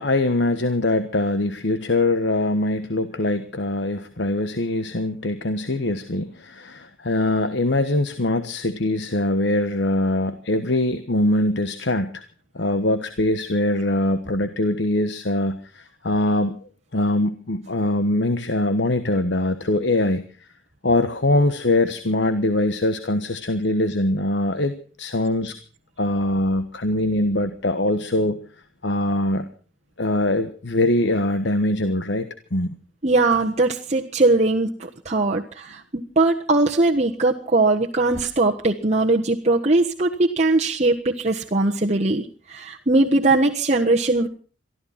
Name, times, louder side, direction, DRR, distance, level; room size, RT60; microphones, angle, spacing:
voice 1, 0.0-12.2 12.5-16.6 16.9-20.5 20.8-24.7 25.0-25.5 26.0-28.4 28.8-29.5 30.0-32.8, left 1 dB, 65° left, 9 dB, 1.3 m, -22 dB
voice 2, 33.0-44.3, right 2 dB, 35° right, 0 dB, 1.4 m, -20 dB
23.5 x 14.5 x 4.2 m, 0.40 s
head